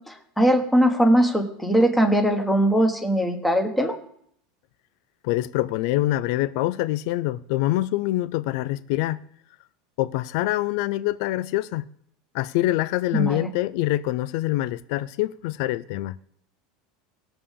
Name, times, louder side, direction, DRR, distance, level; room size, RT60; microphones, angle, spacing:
voice 1, 0.1-3.9 13.1-13.5, right 1 dB, 5° left, 1.3 m, -20 dB
voice 2, 5.2-9.2 10.0-11.9 12.3-16.2, left 16 dB, 60° left, 0.4 m, -25 dB
20.5 x 6.9 x 3.7 m
supercardioid pair, 165°, 2 cm